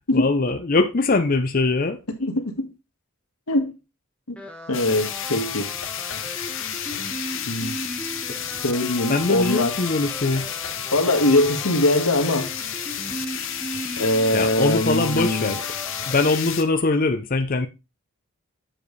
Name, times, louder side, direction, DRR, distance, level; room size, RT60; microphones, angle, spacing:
voice 1, 0.0-2.0 9.1-10.5 14.3-15.6 16.1-17.7, left 3 dB, 40° left, 0.6 m, -22 dB
voice 2, 2.1-2.7 3.5-3.7 4.3-4.4 4.7-5.7 6.1-6.2 7.5-7.8 8.6-9.8 10.9-12.5 14.0-15.5, left 1 dB, 90° left, 1.6 m, -22 dB
sound 1, 4.4-16.3, equal, 5° left, 1.2 m, -37 dB
sound 2, 4.7-16.6, left 9 dB, 60° left, 0.9 m, -31 dB
7.7 x 7.0 x 3.2 m
head